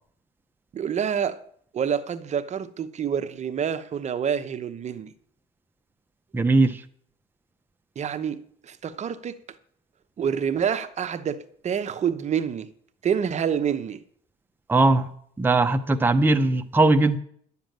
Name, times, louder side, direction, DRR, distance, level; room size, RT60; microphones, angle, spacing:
voice 1, 0.7-1.4 1.7-5.1 8.0-9.4 10.2-12.7 13.0-14.0, right 8 dB, 45° right, 0.9 m, -27 dB
voice 2, 6.3-6.8 14.7-15.1 15.4-17.2, right 2 dB, 10° right, 0.8 m, -19 dB
11.5 x 7.1 x 9.3 m
cardioid pair, 110°, 17 cm